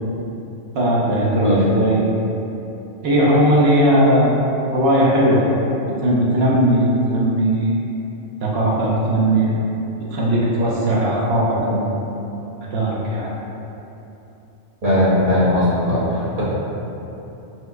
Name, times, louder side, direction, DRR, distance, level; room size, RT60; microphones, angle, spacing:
voice 1, 0.7-2.0 3.0-4.4 4.7-5.5 6.0-7.7 8.4-9.6 10.1-11.9 12.7-13.3, right 1 dB, 60° right, -5 dB, 0.8 m, -18 dB
voice 2, 14.8-16.4, left 1 dB, 35° right, -11 dB, 0.9 m, -18 dB
4.4 x 2.2 x 2.4 m, 3.0 s
omnidirectional pair, 1.2 m